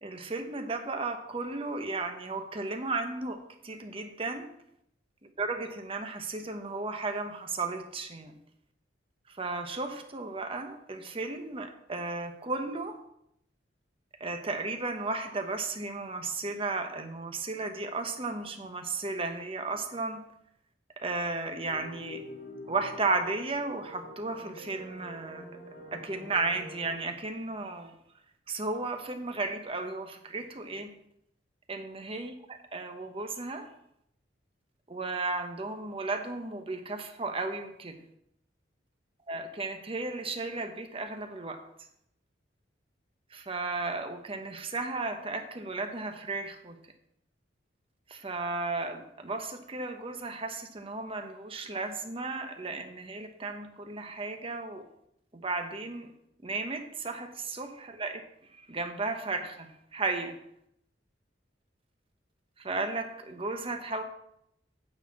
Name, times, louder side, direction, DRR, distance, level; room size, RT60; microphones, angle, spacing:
voice 1, 0.0-4.5 5.4-8.4 9.3-13.0 14.2-20.2 21.0-22.2 22.7-25.5 25.9-27.9 28.5-30.9 31.7-32.3 32.7-33.7 34.9-38.0 39.3-41.6 43.3-46.8 48.1-54.9 55.3-56.1 56.4-60.4 62.6-64.0, right 3 dB, 30° right, 5 dB, 1.1 m, -34 dB
sound 1, 21.7-27.0, left 1 dB, 90° left, 1.6 m, -46 dB
9.5 x 4.3 x 7.5 m, 0.76 s
head